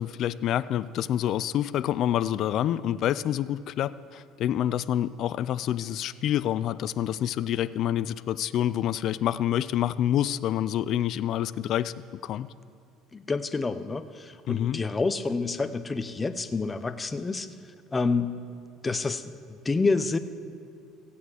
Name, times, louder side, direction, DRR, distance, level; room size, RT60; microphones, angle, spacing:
voice 1, 0.0-11.9 12.2-12.5 14.5-14.8, left 11 dB, 55° left, 17 dB, 0.4 m, -27 dB
voice 2, 13.1-17.5 17.9-18.3 18.8-20.2, left 4 dB, 20° left, 12 dB, 0.6 m, -28 dB
15.0 x 8.6 x 7.9 m, 2.4 s
supercardioid pair, 105°, 0 cm